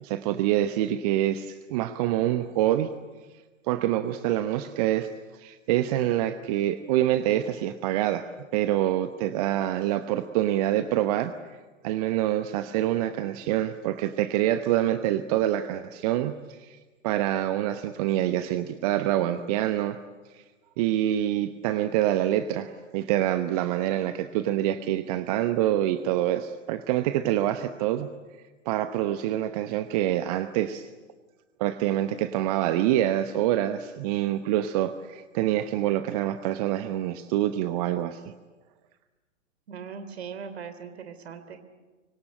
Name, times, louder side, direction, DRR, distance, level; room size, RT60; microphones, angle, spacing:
voice 1, 0.0-2.9 3.6-11.3 11.8-16.8 17.0-20.0 20.3-20.4 20.8-28.1 28.6-30.9 31.6-38.2, right 13 dB, 30° right, 11 dB, 0.9 m, -26 dB
voice 2, 39.7-41.6, right 6 dB, 55° right, 9 dB, 3.2 m, -39 dB
24.5 x 24.5 x 8.9 m, 1.3 s
figure-of-eight pair, 110°, 37 cm